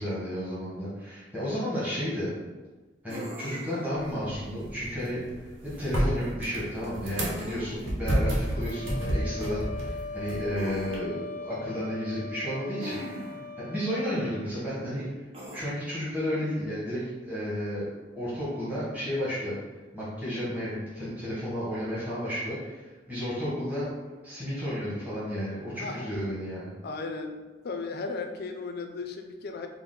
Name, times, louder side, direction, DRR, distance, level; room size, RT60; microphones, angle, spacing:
voice 1, 0.0-2.3 3.0-5.2 5.6-15.1 15.5-17.9 18.1-19.6 19.9-23.9 24.2-26.7, equal, 10° right, -11 dB, 1.1 m, -32 dB
sound 1, 3.1-3.9 7.2-8.0 10.6-10.9 12.8-13.5 15.3-15.6, equal, 30° right, 0.7 m, -40 dB
sound 2, 4.0-11.0, equal, 70° right, 1.0 m, -31 dB
sound 3, 8.4-14.5, left 3 dB, 5° left, 0.7 m, -40 dB
voice 2, 26.8-27.4 27.6-29.7, left 4 dB, 55° left, 5 dB, 0.4 m, -35 dB
4.3 x 2.1 x 3.7 m, 1.3 s
head